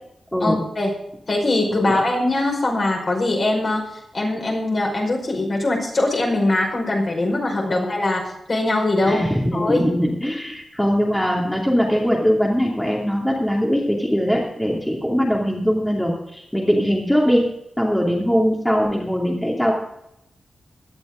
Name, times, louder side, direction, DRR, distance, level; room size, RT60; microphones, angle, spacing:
voice 1, 0.4-0.9 1.3-3.8 4.1-8.2 8.5-9.3 9.5-9.8, left 2 dB, 40° left, 0 dB, 5.3 m, -21 dB
voice 2, 9.0-17.4 17.8-19.7, equal, 5° left, -3 dB, 2.6 m, -21 dB
17.5 x 12.0 x 3.8 m, 0.80 s
wide cardioid pair, 135°, 0 cm